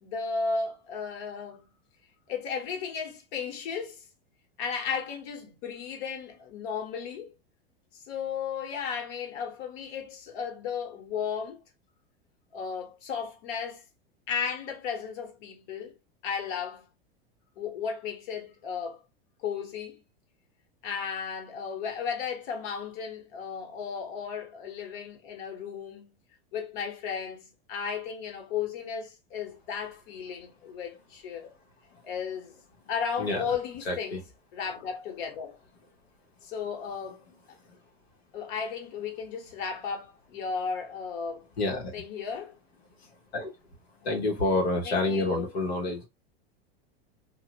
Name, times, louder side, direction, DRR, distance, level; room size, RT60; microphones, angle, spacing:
voice 1, 0.0-1.7 2.3-4.0 4.6-7.3 7.9-11.6 12.5-13.8 14.3-15.9 16.2-16.9 17.6-19.0 19.4-20.0 20.8-26.1 26.5-31.5 32.0-32.6 32.9-34.3 34.5-35.6 36.4-37.2 38.3-41.5 41.9-42.6 44.8-45.5, left 6 dB, 60° left, 1.0 m, -34 dB
voice 2, 33.9-34.2 41.6-41.9 43.3-43.5 44.0-46.0, left 2 dB, 90° left, 0.8 m, -28 dB
2.7 x 2.1 x 2.7 m
hypercardioid pair, 100°, 30 cm